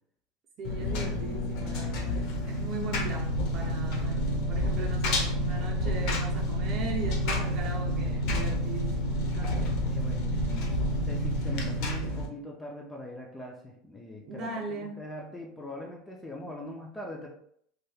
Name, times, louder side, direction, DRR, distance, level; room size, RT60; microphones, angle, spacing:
Engine, 0.6-12.3, equal, 55° left, 0.6 m, -29 dB
voice 1, 0.6-9.8 14.3-15.0, right 3 dB, 35° right, 0.6 m, -39 dB
voice 2, 9.4-10.8 11.0-17.3, left 1 dB, 10° left, 0.4 m, -42 dB
2.7 x 2.3 x 3.3 m
supercardioid pair, 165°, 0 cm